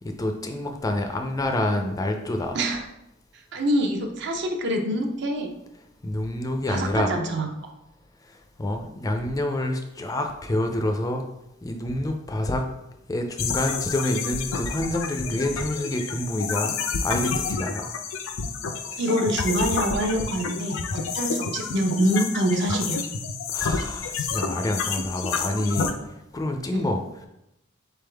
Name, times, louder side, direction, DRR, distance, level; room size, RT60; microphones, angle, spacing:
voice 1, 0.0-2.6 6.0-7.2 8.6-11.3 11.6-12.6 13.1-18.0 18.9-19.0 23.5-25.9 26.3-27.0, left 1 dB, 20° left, 4 dB, 0.4 m, -27 dB
voice 2, 2.5-2.8 3.5-5.5 6.7-7.5 19.0-23.0 26.7-26.9, right 1 dB, 60° right, 3 dB, 0.6 m, -25 dB
sound 1, 13.4-25.9, left 5 dB, 80° left, 0.5 m, -29 dB
3.9 x 3.5 x 3.4 m, 0.86 s
head